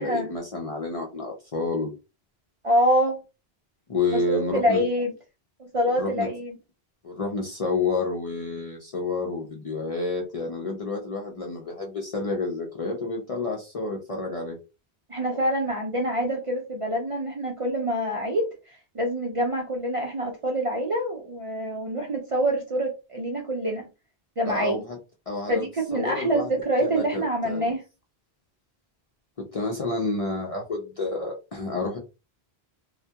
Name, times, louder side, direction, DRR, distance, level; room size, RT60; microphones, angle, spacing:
voice 1, 0.0-1.9 3.9-4.8 5.9-6.3 7.0-14.6 24.4-25.0 25.3-25.7 25.9-26.5 26.8-27.7 29.4-32.0, left 3 dB, 45° left, 0 dB, 0.4 m, -29 dB
voice 2, 2.6-3.2 4.1-5.1 5.6-6.6 15.1-18.5 18.9-23.9 24.4-24.8 25.5-27.8, equal, 50° right, -1 dB, 0.4 m, -26 dB
2.2 x 2.1 x 2.7 m, 0.28 s
omnidirectional pair, 1.1 m